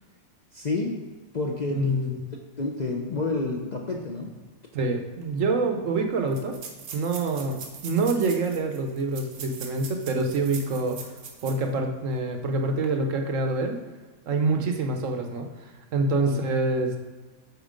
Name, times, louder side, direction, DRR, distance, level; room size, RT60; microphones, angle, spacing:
voice 1, 0.5-0.9 1.3-2.1 2.6-4.3 16.3-16.4, left 3 dB, 45° left, 0 dB, 0.6 m, -29 dB
voice 2, 1.7-2.2 4.7-6.6 6.9-11.0 11.4-13.8 14.3-15.5 15.9-17.0, right 3 dB, 65° right, 4 dB, 1.1 m, -26 dB
sound 1, 5.2-5.3 5.5-5.6 6.3-11.7 12.1-12.2 12.7-12.9, right 5 dB, 85° right, 1.4 m, -42 dB
8.0 x 4.3 x 5.1 m, 1.3 s
omnidirectional pair, 1.5 m